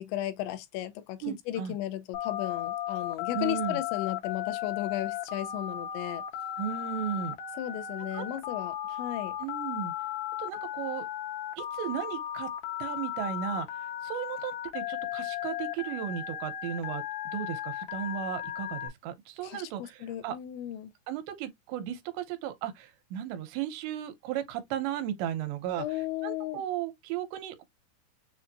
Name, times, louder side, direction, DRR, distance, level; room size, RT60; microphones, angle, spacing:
voice 1, 0.0-6.2 7.6-9.4 19.4-20.9 25.8-26.6, left 13 dB, 90° left, 3.0 m, -35 dB
voice 2, 1.2-1.7 3.3-3.8 6.6-7.4 8.1-8.2 9.4-9.9 10.4-11.1 11.6-12.5 12.8-13.7 14.0-17.0 17.3-20.4 21.1-25.8 26.2-27.6, right 10 dB, 85° right, 3.0 m, -35 dB
Telephone, 2.1-18.9, left 11 dB, 70° left, 2.5 m, -35 dB
7.1 x 2.6 x 2.5 m
omnidirectional pair, 5.1 m